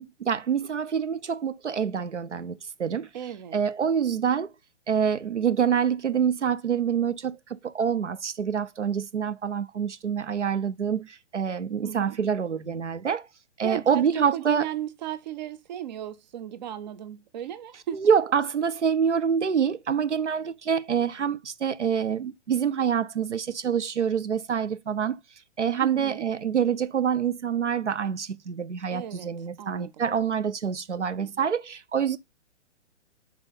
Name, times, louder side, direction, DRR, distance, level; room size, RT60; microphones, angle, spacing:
voice 1, 0.0-3.1 3.5-4.5 4.9-13.3 13.6-14.7 17.9-25.2 25.6-32.2, right 7 dB, 80° right, 0.7 m, -26 dB
voice 2, 3.1-3.6 11.8-12.2 13.6-18.1 25.8-26.2 28.9-29.3 29.6-29.9 31.1-31.4, right 11 dB, 40° right, 0.6 m, -36 dB
6.1 x 4.2 x 3.8 m
figure-of-eight pair, 120°, 35 cm